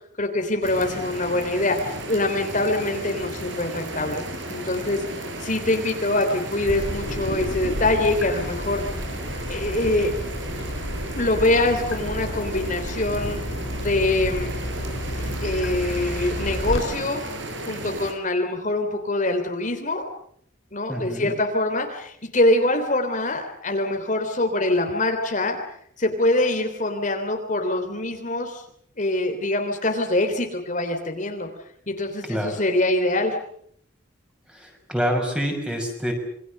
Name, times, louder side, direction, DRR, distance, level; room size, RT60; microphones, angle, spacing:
voice 1, 0.2-4.2 4.5-5.0 5.4-8.8 9.5-10.3 11.1-13.4 13.8-14.5 15.2-17.2 17.6-20.0 20.7-25.6 26.0-28.6 29.0-31.5 31.9-33.4, left 2 dB, 40° left, 4 dB, 3.3 m, -24 dB
sound 1, 0.6-18.1, right 1 dB, 65° right, 6.6 m, -34 dB
Water tap faucet / Drip, 6.6-16.8, left 1 dB, 70° left, 6.0 m, -32 dB
voice 2, 20.9-21.3 32.3-32.6 34.5-36.1, equal, 5° right, 3 dB, 6.3 m, -27 dB
27.5 x 24.5 x 6.7 m, 0.67 s
head